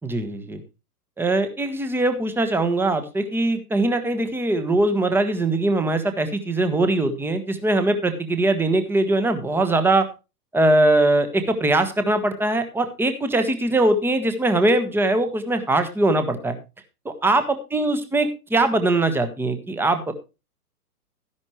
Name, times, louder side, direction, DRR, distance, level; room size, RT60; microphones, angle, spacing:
voice 1, 0.0-0.6 1.2-10.1 10.5-16.6 17.0-20.1, right 2 dB, 5° right, 8 dB, 1.3 m, -21 dB
13.5 x 11.0 x 3.2 m, 0.28 s
figure-of-eight pair, 115°, 47 cm